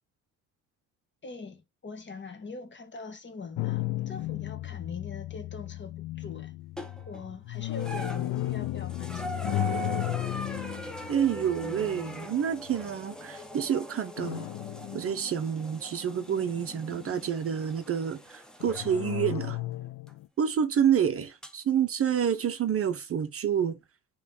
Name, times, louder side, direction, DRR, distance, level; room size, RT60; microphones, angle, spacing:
voice 1, 1.2-6.6 7.1-9.5, left 4 dB, 30° left, 1.2 m, -42 dB
sound 1, 3.6-12.9 14.2-15.8 16.2-17.3 18.6-20.3, left 16 dB, 50° left, 0.5 m, -35 dB
sound 2, 6.8-7.2 7.7-18.9 20.1-20.2 21.4-21.5, right 2 dB, ahead, 0.9 m, -41 dB
voice 2, 11.1-14.5 14.9-19.6 20.4-23.8, right 8 dB, 35° right, 0.7 m, -28 dB
3.4 x 3.1 x 3.7 m
hypercardioid pair, 60°, 38 cm